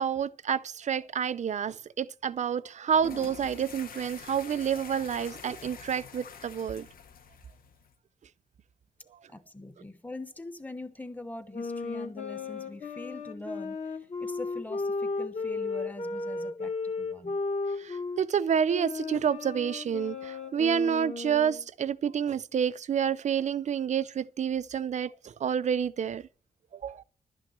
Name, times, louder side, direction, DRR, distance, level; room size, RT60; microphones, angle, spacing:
voice 1, 0.0-6.9 17.8-26.2 26.8-27.0, right 8 dB, 55° right, 0.4 m, -29 dB
sound 1, 2.9-7.9, left 7 dB, 75° left, 1.0 m, -46 dB
voice 2, 9.3-17.4, left 2 dB, 10° left, 1.0 m, -43 dB
sound 2, 11.5-18.2 18.7-21.6, left 3 dB, 50° left, 1.5 m, -34 dB
12.0 x 6.0 x 8.7 m
wide cardioid pair, 130°, 15 cm